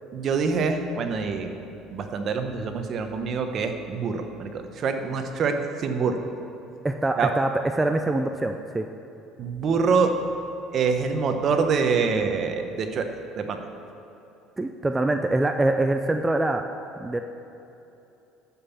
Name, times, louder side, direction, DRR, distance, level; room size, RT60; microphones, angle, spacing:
voice 1, 0.1-1.5 1.9-6.2 7.2-7.3 9.4-10.1 10.7-13.1 13.4-13.6, right 5 dB, 45° right, 6 dB, 0.9 m, -25 dB
voice 2, 6.8-8.9 14.6-16.7 17.0-17.2, right 2 dB, 10° right, 5 dB, 0.4 m, -24 dB
11.0 x 5.5 x 7.1 m, 2.9 s
cardioid pair, 125°, 0 cm